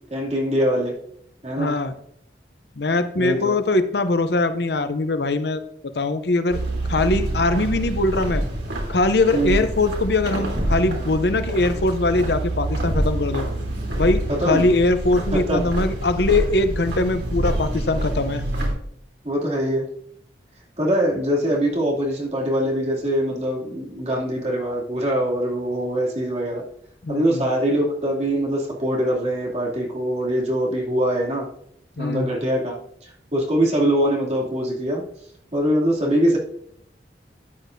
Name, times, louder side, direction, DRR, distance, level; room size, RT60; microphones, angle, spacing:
voice 1, 0.1-1.0 1.4-1.7 3.2-3.6 9.3-9.6 14.3-14.7 15.3-15.6 19.2-19.9 20.8-26.6 27.1-31.5 32.0-32.7 33.0-35.0 35.5-36.4, right 1 dB, 35° right, -3 dB, 2.7 m, -23 dB
voice 2, 1.6-1.9 2.8-5.6 5.9-6.6 6.9-8.4 8.9-13.5 14.0-18.4 27.0-27.5 32.0-32.3, left 2 dB, 65° left, 10 dB, 0.7 m, -21 dB
sound 1, 6.5-18.7, right 1 dB, 75° right, 3.4 m, -26 dB
13.5 x 9.2 x 2.7 m, 0.69 s
head